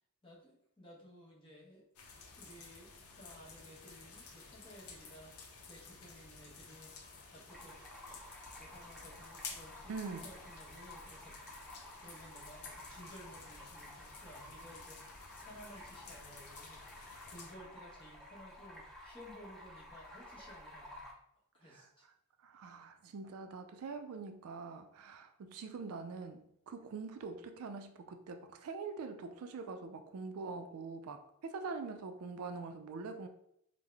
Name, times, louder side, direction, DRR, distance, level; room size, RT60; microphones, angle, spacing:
voice 1, 0.2-1.9 2.3-21.0 21.5-22.1, equal, 25° left, 1.0 m, -56 dB
sound 1, 2.0-17.5, left 4 dB, 70° left, 0.6 m, -53 dB
Stream, 7.5-21.1, left 1 dB, ahead, 0.5 m, -53 dB
voice 2, 9.9-10.3 21.7-21.9 22.4-33.3, right 4 dB, 65° right, 0.3 m, -44 dB
3.6 x 2.0 x 3.3 m
head